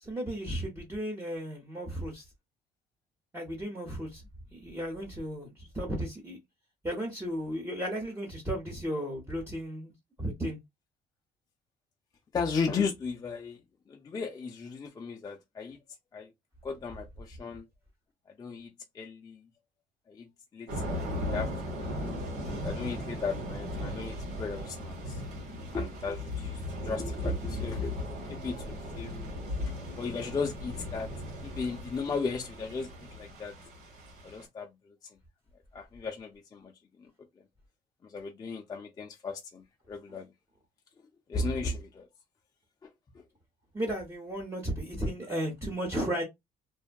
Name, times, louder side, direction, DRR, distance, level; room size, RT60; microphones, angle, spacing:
voice 1, 0.0-2.2 3.3-4.2 4.5-6.4 6.8-9.9 10.2-10.6 43.7-46.2, equal, 15° right, 0.8 m, -34 dB
voice 2, 12.3-13.6 13.9-15.8 16.1-16.3 16.6-17.6 18.4-18.7 18.9-19.4 20.1-20.3 20.5-20.8 21.2-25.2 25.7-29.3 30.0-33.6 34.2-34.7 35.7-36.7 38.0-40.3 41.3-42.1 43.1-43.2, left 4 dB, 20° left, 0.4 m, -36 dB
Thunder / Rain, 20.7-34.4, left 1 dB, 75° right, 1.3 m, -37 dB
2.6 x 2.2 x 2.2 m
cardioid pair, 110°, 17 cm